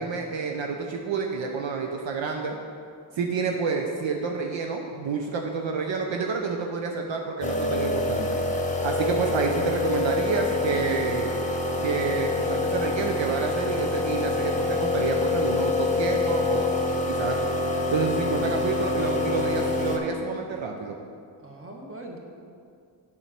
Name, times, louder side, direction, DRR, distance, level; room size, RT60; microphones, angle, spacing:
voice 1, 0.0-2.6 3.1-8.3 8.8-11.3 11.8-16.7 17.1-17.4 17.9-21.0, right 5 dB, 70° right, 2 dB, 0.8 m, -29 dB
sound 1, 7.4-20.0, left 2 dB, 15° left, 1.2 m, -26 dB
voice 2, 21.4-22.2, right 1 dB, 25° right, 0 dB, 1.6 m, -41 dB
7.0 x 6.7 x 4.4 m, 2.3 s
cardioid pair, 50°, 47 cm